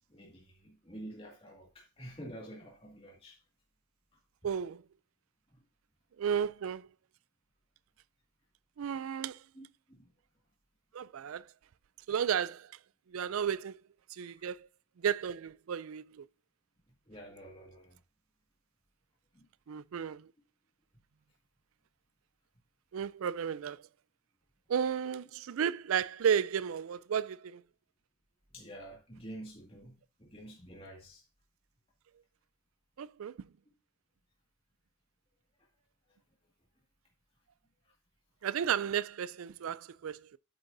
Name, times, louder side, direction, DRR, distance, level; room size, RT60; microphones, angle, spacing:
voice 1, 0.1-3.4 9.6-10.1 17.1-18.0 19.4-19.5 28.5-31.2, right 1 dB, 25° left, 1.9 m, -48 dB
voice 2, 4.4-4.8 6.2-6.9 8.8-9.4 10.9-11.5 12.1-12.7 13.1-13.8 14.1-14.7 15.0-16.3 19.7-20.3 22.9-23.8 24.7-27.6 33.0-33.5 38.4-40.4, right 8 dB, 80° right, 0.4 m, -33 dB
8.7 x 8.0 x 2.6 m
head